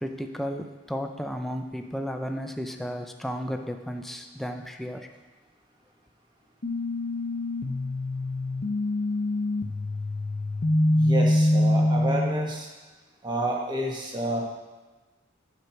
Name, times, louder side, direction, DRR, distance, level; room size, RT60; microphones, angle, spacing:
voice 1, 0.0-5.1, equal, ahead, 4 dB, 0.5 m, -33 dB
sound 1, 6.6-12.6, left 1 dB, 50° left, 0.6 m, -25 dB
voice 2, 10.9-12.7 13.2-14.4, right 1 dB, 25° right, -2 dB, 1.3 m, -29 dB
7.9 x 6.1 x 4.5 m, 1.2 s
head